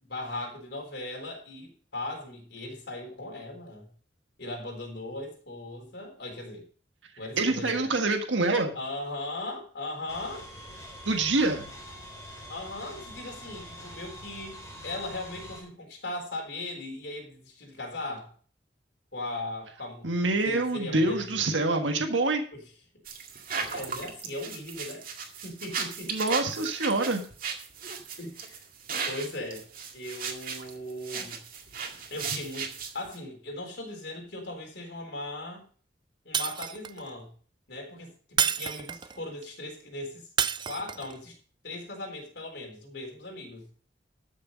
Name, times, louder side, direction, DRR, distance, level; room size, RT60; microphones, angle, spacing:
voice 1, 0.1-3.9 4.4-6.6 7.2-7.9 8.7-10.5 12.5-18.3 19.1-20.1 20.4-21.3 22.5-22.6 23.7-26.1 28.2-28.6 29.1-29.6 29.9-31.4 32.1-35.7 36.2-37.3 37.7-40.3 40.7-41.4 41.6-43.7, left 2 dB, 60° left, 1 dB, 3.9 m, -38 dB
voice 2, 7.4-8.7 11.0-11.7 20.0-22.4 26.1-27.2, right 2 dB, 85° right, 4 dB, 1.6 m, -26 dB
sound 1, 10.1-15.6, equal, 15° left, 3.8 m, -45 dB
sound 2, 23.0-33.2, right 6 dB, 50° right, 2.1 m, -36 dB
Shatter, 36.3-37.1 38.4-39.2 40.4-41.2, right 8 dB, 25° right, 0.4 m, -29 dB
13.5 x 6.5 x 5.2 m, 0.43 s
head